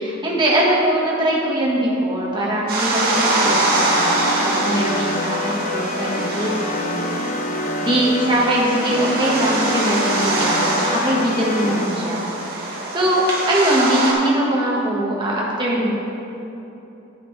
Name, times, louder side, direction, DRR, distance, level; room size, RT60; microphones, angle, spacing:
voice 1, 0.0-7.1 7.5-12.2 12.5-15.9, right 1 dB, 25° right, -4 dB, 1.5 m, -21 dB
sound 1, 2.7-14.1, right 2 dB, 50° right, 1.9 m, -24 dB
sound 2, 3.1-11.9, left 2 dB, 40° left, 0.4 m, -27 dB
10.0 x 9.6 x 3.3 m, 3.0 s
head